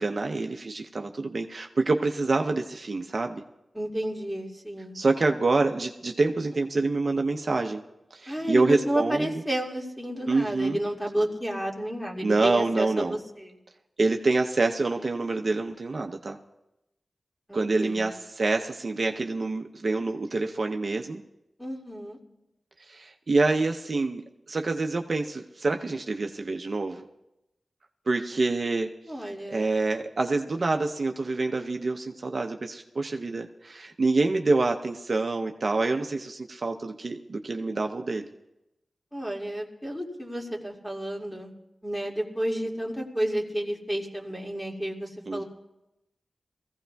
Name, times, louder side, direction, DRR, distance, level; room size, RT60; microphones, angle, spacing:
voice 1, 0.0-3.4 4.9-7.8 8.1-9.3 10.3-10.8 12.2-13.2 14.0-16.4 17.5-21.2 22.9-27.1 28.1-28.9 29.5-38.3 45.3-45.4, right 3 dB, 55° right, 4 dB, 0.7 m, -26 dB
voice 2, 3.7-5.0 8.3-13.5 17.5-18.1 21.6-22.2 29.1-29.7 39.1-41.5 41.8-45.4, right 1 dB, 5° left, -1 dB, 2.1 m, -31 dB
23.0 x 15.5 x 2.3 m, 0.92 s
wide cardioid pair, 90°, 0 cm